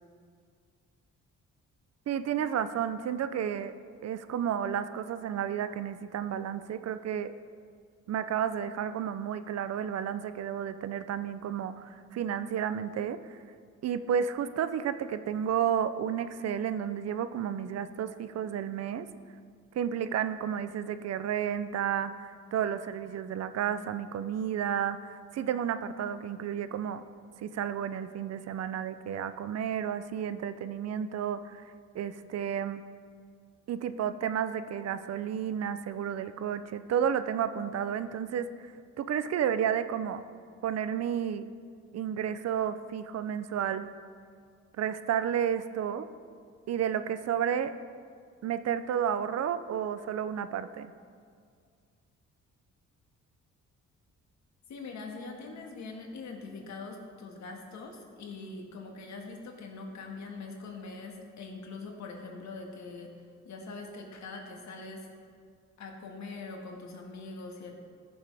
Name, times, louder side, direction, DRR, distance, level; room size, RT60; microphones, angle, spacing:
voice 1, 2.1-3.7 4.0-7.3 8.1-13.4 13.8-19.1 19.7-27.0 27.4-31.6 31.9-32.8 33.7-40.2 40.6-41.5 41.9-43.9 44.8-46.1 46.7-47.7 48.4-50.9, right 8 dB, 60° right, 12 dB, 0.6 m, -32 dB
voice 2, 54.7-63.1 63.4-65.1 65.8-67.7, left 3 dB, 65° left, 2 dB, 1.8 m, -43 dB
14.5 x 7.2 x 3.5 m, 2.1 s
cardioid pair, 90°, 30 cm